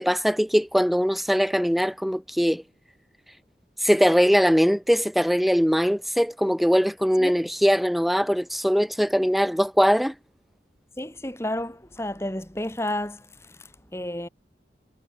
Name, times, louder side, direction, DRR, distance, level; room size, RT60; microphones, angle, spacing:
voice 1, 0.0-2.6 3.8-10.1, equal, ahead, 3.3 m, -21 dB
voice 2, 11.0-13.3 13.9-14.3, left 1 dB, 15° left, 3.0 m, -31 dB
head